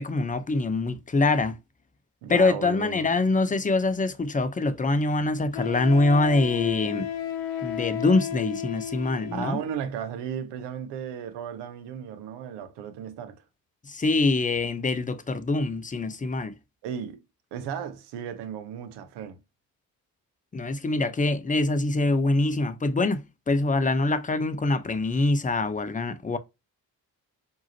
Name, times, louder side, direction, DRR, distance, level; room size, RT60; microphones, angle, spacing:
voice 1, 0.0-1.6 2.3-7.1 7.6-9.6 13.8-16.5 20.5-26.4, left 2 dB, 20° left, 0.7 m, -24 dB
voice 2, 2.2-3.1 9.3-13.4 16.8-17.2 17.5-19.4, right 8 dB, 75° right, 0.9 m, -35 dB
Wind instrument woodwind instrument, 4.3-4.4 5.5-9.6, left 9 dB, 75° left, 0.8 m, -33 dB
4.7 x 2.8 x 2.7 m
hypercardioid pair, 40°, 43 cm